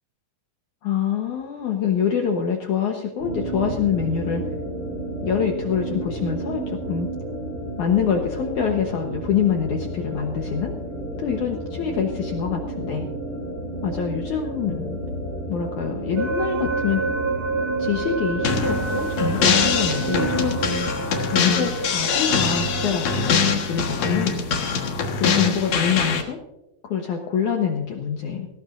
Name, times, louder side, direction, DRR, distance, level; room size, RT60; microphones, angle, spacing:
voice 1, 0.8-4.4 5.2-7.1 7.8-10.7 11.2-13.1 13.8-15.0 15.5-17.0 17.8-20.8 21.2-24.4 25.2-26.4 26.8-28.5, left 7 dB, 85° left, 2 dB, 1.7 m, -25 dB
sound 1, 3.2-20.8, right 1 dB, 25° right, 4.0 m, -31 dB
sound 2, 16.2-24.2, right 4 dB, 65° right, 1.8 m, -29 dB
sound 3, 18.4-26.2, left 5 dB, 65° left, 1.6 m, -23 dB
19.0 x 17.5 x 2.6 m, 0.91 s
omnidirectional pair, 5.4 m